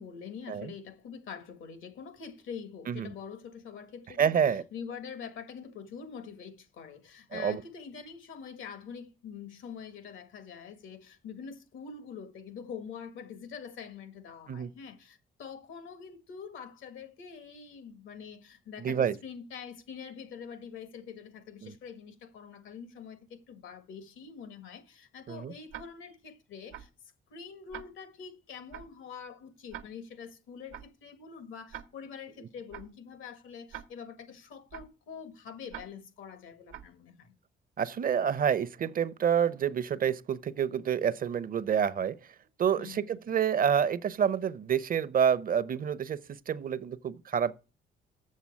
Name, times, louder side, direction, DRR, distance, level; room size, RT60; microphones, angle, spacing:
voice 1, 0.0-26.9 27.3-37.3 42.8-43.2, left 6 dB, 85° left, 1.7 m, -45 dB
voice 2, 4.2-4.6 7.3-7.6 14.5-14.7 18.8-19.2 21.6-21.7 25.3-25.5 37.8-42.2 42.6-47.5, right 8 dB, 45° right, 0.7 m, -28 dB
Tick-tock, 25.7-25.8 26.7-26.8 27.7-27.8 28.7-28.8 29.7-29.8 30.7-30.8 31.7-31.8 32.7-32.8 33.7-33.8 34.7-34.8 35.7-35.8 36.7-36.8, right 11 dB, 75° right, 1.1 m, -42 dB
7.5 x 7.0 x 8.3 m
cardioid pair, 90°, 20 cm